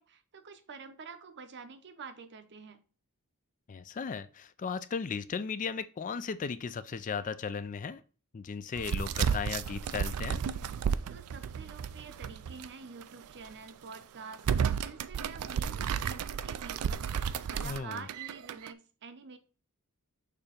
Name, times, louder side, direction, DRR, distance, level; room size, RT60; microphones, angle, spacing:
voice 1, 0.0-2.8 11.1-19.4, right 5 dB, 55° right, 0.7 m, -48 dB
voice 2, 3.7-8.0 8.3-10.4 17.6-18.0, left 5 dB, 35° left, 0.4 m, -36 dB
sound 1, 8.8-12.7 13.0-13.1 13.7-13.9 14.3-18.7, right 7 dB, 75° right, 0.4 m, -33 dB
6.7 x 2.9 x 5.0 m
head